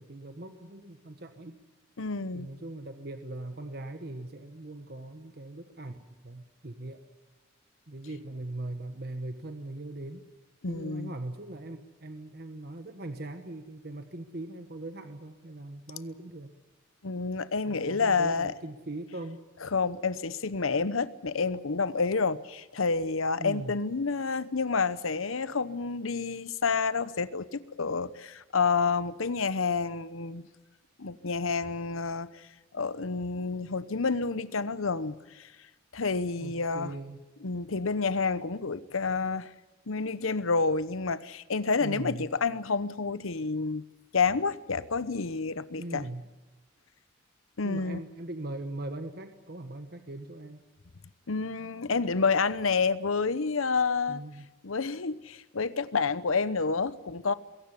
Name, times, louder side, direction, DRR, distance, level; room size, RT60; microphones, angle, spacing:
voice 1, 0.0-1.6 2.3-7.0 7.9-10.2 10.7-16.5 17.6-19.4 23.4-23.7 36.4-37.2 41.8-42.2 45.8-46.2 47.6-50.6 54.1-54.5, right 2 dB, 50° right, 1.3 m, -40 dB
voice 2, 2.0-2.5 10.6-11.1 17.0-18.5 19.6-30.5 31.0-32.3 32.7-35.2 35.9-36.9 37.4-39.5 39.9-43.8 44.1-46.0 47.6-48.0 51.3-54.2 54.6-57.3, left 4 dB, 90° left, 0.9 m, -29 dB
22.0 x 17.5 x 9.8 m
head